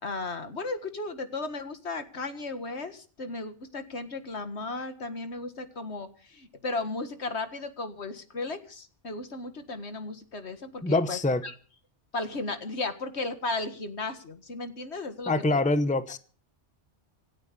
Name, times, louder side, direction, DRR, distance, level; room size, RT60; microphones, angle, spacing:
voice 1, 0.0-11.5 12.1-15.6, left 3 dB, 75° left, 2.0 m, -35 dB
voice 2, 10.8-11.4 15.3-16.2, left 2 dB, 10° left, 0.8 m, -25 dB
26.5 x 8.9 x 5.4 m
omnidirectional pair, 1.2 m